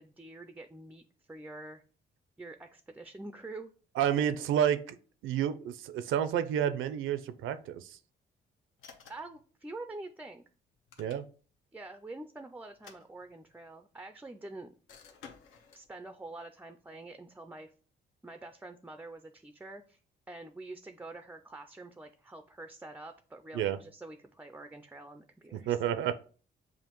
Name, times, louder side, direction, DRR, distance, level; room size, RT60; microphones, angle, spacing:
voice 1, 0.0-1.8 2.4-3.7 9.1-10.4 11.7-14.7 15.7-17.7 18.2-20.0 20.3-25.8, right 2 dB, 10° right, 8 dB, 0.3 m, -46 dB
voice 2, 4.0-5.0 5.2-8.0 11.0-11.2 23.5-23.8 25.5-26.1, right 9 dB, 80° right, 12 dB, 0.4 m, -30 dB
sound 1, 8.8-9.4 10.7-11.6 12.7-13.7 14.9-15.9, left 6 dB, 85° left, 0.8 m, -54 dB
7.1 x 2.5 x 2.9 m, 0.40 s
cardioid pair, 90°, 20 cm